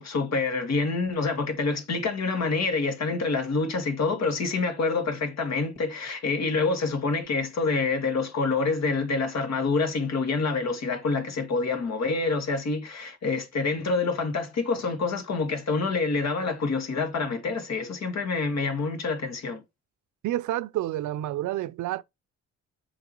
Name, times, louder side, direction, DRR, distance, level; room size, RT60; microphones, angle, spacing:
voice 1, 0.0-19.6, left 4 dB, 60° left, 2.0 m, -27 dB
voice 2, 20.2-22.0, right 14 dB, 75° right, 0.6 m, -29 dB
7.2 x 4.9 x 4.5 m
cardioid pair, 90°, 30 cm